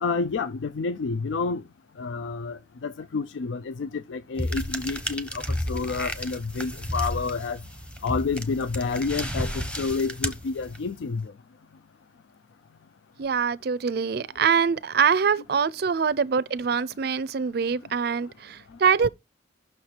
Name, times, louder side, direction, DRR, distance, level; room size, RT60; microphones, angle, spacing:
voice 1, 0.0-1.6 2.0-7.6 8.0-11.3, left 4 dB, 80° left, 0.4 m, -29 dB
sound 1, 4.4-11.0, equal, 5° left, 0.8 m, -32 dB
voice 2, 13.2-19.1, right 6 dB, 55° right, 0.4 m, -24 dB
6.1 x 4.4 x 6.5 m
head